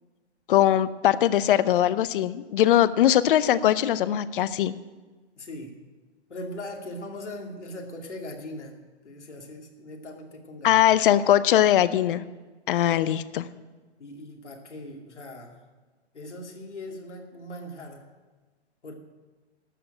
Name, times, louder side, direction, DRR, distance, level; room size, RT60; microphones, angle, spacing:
voice 1, 0.5-4.7 10.6-12.2 12.7-13.5, left 11 dB, 50° left, 16 dB, 0.7 m, -21 dB
voice 2, 5.4-5.8 6.3-8.7 9.0-10.8 14.0-15.5 16.1-18.1 18.8-18.9, left 1 dB, 85° left, 1 dB, 2.6 m, -40 dB
12.5 x 6.9 x 8.9 m, 1.3 s
hypercardioid pair, 130°, 34 cm